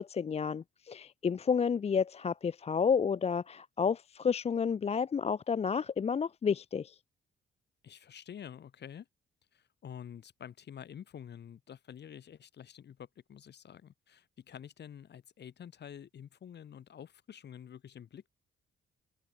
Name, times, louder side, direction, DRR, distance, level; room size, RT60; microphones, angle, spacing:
voice 1, 0.0-7.0, left 6 dB, 30° left, 0.6 m, -30 dB
voice 2, 7.8-9.1 9.5-18.3, left 9 dB, 60° left, 4.7 m, -48 dB
open air
cardioid pair, 90°, 20 cm